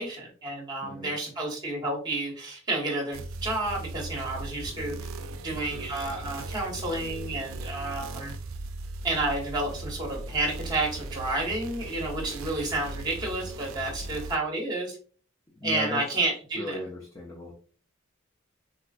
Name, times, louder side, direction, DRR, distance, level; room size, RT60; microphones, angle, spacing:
voice 1, 0.0-5.0 5.4-8.3 9.0-15.0 15.6-16.8, right 2 dB, 20° right, -2 dB, 1.0 m, -30 dB
voice 2, 0.8-1.1 15.5-16.0 16.6-17.5, left 1 dB, 15° left, -2 dB, 0.5 m, -36 dB
sound 1, 3.1-14.4, right 2 dB, 85° right, 0.4 m, -38 dB
4.0 x 2.3 x 2.3 m, 0.42 s
head